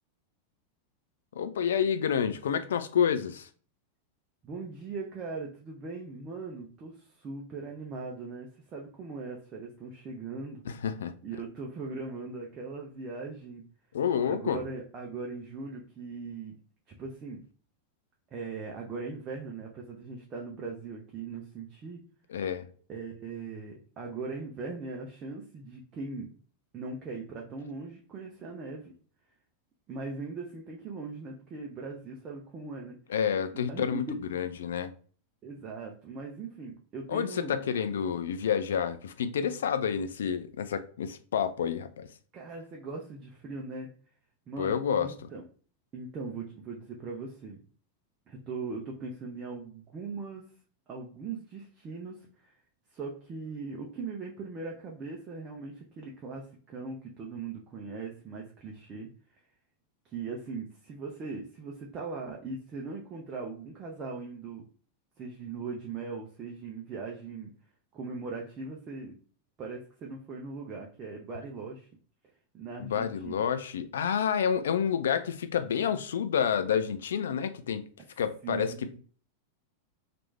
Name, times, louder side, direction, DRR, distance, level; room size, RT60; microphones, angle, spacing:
voice 1, 1.3-3.5 10.7-11.1 13.9-14.6 22.3-22.6 33.1-34.0 34.3-34.9 37.1-42.1 44.6-45.1 72.8-77.8 78.2-78.7, left 7 dB, 65° left, 0.3 m, -29 dB
voice 2, 4.4-10.6 11.2-13.6 14.3-16.5 17.0-17.4 18.3-22.0 22.9-26.3 26.7-28.9 29.9-33.0 33.5-34.0 35.4-37.6 42.3-43.9 44.5-45.4 45.9-47.6 48.3-50.4 50.9-52.5 52.9-59.1 60.1-64.6 65.2-67.5 67.9-69.2 69.6-71.9 72.5-73.4 75.7-75.9 78.4-79.0, right 4 dB, 30° right, 0.6 m, -40 dB
3.1 x 2.5 x 3.1 m
figure-of-eight pair, 90°, 0 cm